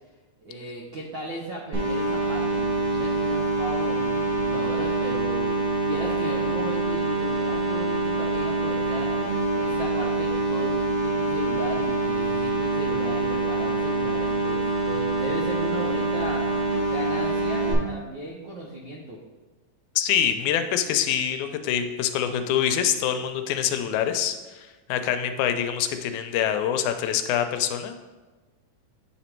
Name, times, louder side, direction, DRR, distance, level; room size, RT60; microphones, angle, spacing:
voice 1, 0.4-5.5 5.8-16.5 16.9-19.2, right 1 dB, 90° right, -3 dB, 1.0 m, -36 dB
sound 1, 1.7-17.7, right 2 dB, 45° right, 2.5 m, -25 dB
voice 2, 20.0-27.9, left 9 dB, 90° left, 8 dB, 2.0 m, -25 dB
8.3 x 4.1 x 4.4 m, 1.2 s
omnidirectional pair, 3.3 m